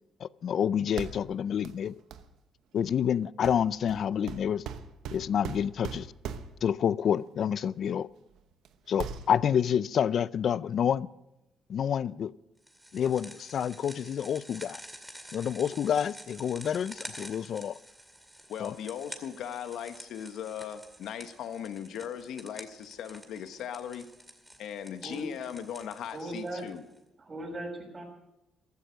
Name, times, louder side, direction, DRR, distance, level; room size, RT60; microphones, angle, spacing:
voice 1, 0.2-1.9 2.7-4.6 5.1-6.1 6.6-8.1 8.9-11.1 11.7-12.3 12.9-14.8 15.3-17.8 18.6-18.7, left 8 dB, 60° left, 0.4 m, -28 dB
sound 1, 1.0-1.4 1.7-1.8 2.1-2.3 3.4-6.7 7.8-7.9 8.4-8.7 8.9-9.7, right 7 dB, 85° right, 1.0 m, -40 dB
sound 2, 12.7-27.0, equal, 5° right, 2.3 m, -49 dB
voice 2, 18.5-24.1 24.6-26.8, left 9 dB, 80° left, 1.2 m, -38 dB
voice 3, 26.1-26.6 27.2-28.0, right 1 dB, 30° right, 6.4 m, -38 dB
15.5 x 13.0 x 6.3 m
cardioid pair, 90°, 0 cm